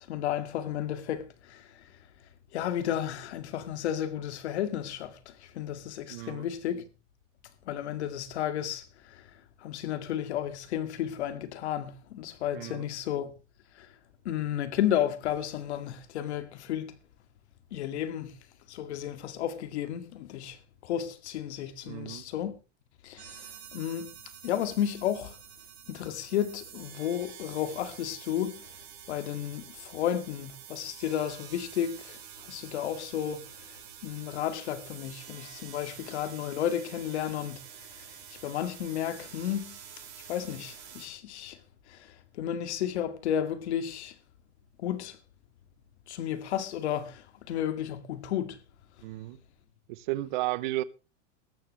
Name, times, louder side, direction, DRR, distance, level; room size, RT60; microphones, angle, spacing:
voice 1, 0.1-1.9 2.5-6.8 7.7-9.3 9.6-13.3 13.8-13.9 14.3-16.9 17.7-18.3 18.7-22.6 23.0-24.1 24.4-25.4 25.9-28.7 29.1-37.6 37.9-39.8 40.3-41.6 41.9-44.1 44.8-45.2 46.1-48.6, left 10 dB, 65° left, 2.1 m, -33 dB
voice 2, 6.1-6.5 12.5-12.9 21.9-22.2 49.0-49.4 49.9-50.8, right 17 dB, 40° right, 0.6 m, -33 dB
sound 1, 23.2-41.1, right 9 dB, 60° right, 5.6 m, -48 dB
18.0 x 14.0 x 3.2 m
supercardioid pair, 175°, 36 cm